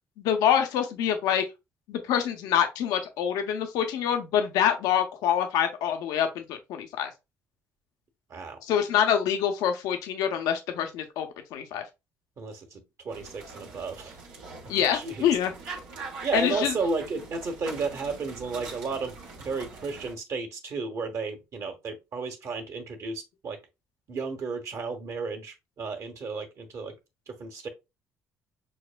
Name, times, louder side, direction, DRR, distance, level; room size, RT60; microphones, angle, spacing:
voice 1, 0.2-1.4 1.9-7.1 8.6-11.8 14.7-15.5 16.3-16.7, left 9 dB, 80° left, 0.6 m, -26 dB
voice 2, 12.4-14.2 14.9-15.3 16.2-19.1 19.4-23.6 24.1-26.9 27.3-27.7, right 4 dB, 55° right, 1.3 m, -33 dB
sound 1, 13.1-20.1, right 4 dB, 90° right, 1.3 m, -43 dB
6.3 x 2.2 x 2.4 m
supercardioid pair, 70°, 6 cm